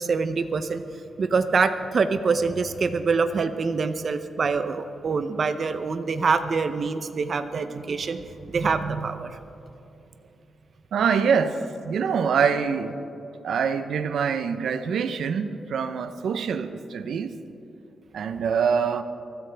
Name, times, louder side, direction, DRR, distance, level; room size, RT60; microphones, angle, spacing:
voice 1, 0.0-9.4, right 4 dB, 50° right, 9 dB, 0.6 m, -25 dB
voice 2, 10.9-12.9 13.4-17.4 18.1-19.0, right 6 dB, 80° right, 10 dB, 0.7 m, -25 dB
23.5 x 13.5 x 3.4 m, 2.9 s
wide cardioid pair, 120°, 0 cm